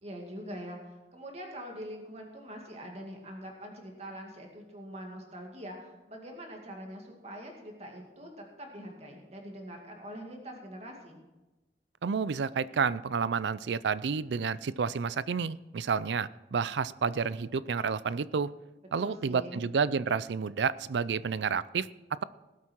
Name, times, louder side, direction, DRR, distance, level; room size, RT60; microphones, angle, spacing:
voice 1, 0.0-11.2 19.0-19.6, equal, 35° right, 1 dB, 2.3 m, -44 dB
voice 2, 12.0-18.5 18.9-22.2, right 6 dB, 85° right, 18 dB, 0.4 m, -30 dB
19.0 x 8.3 x 4.5 m, 1.1 s
head